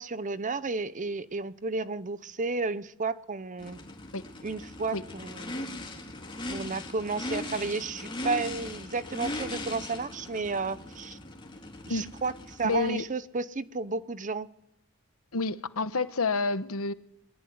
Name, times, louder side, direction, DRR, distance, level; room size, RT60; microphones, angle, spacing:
voice 1, 0.0-3.8 4.4-5.6 6.5-11.2 11.9-14.5, right 4 dB, 35° right, 0.8 m, -32 dB
Race car auto racing / Idling / Accelerating revving vroom, 3.6-13.0, left 1 dB, 25° left, 3.3 m, -39 dB
voice 2, 12.6-13.0 15.3-16.9, left 3 dB, 70° left, 1.2 m, -29 dB
21.5 x 19.0 x 9.5 m
head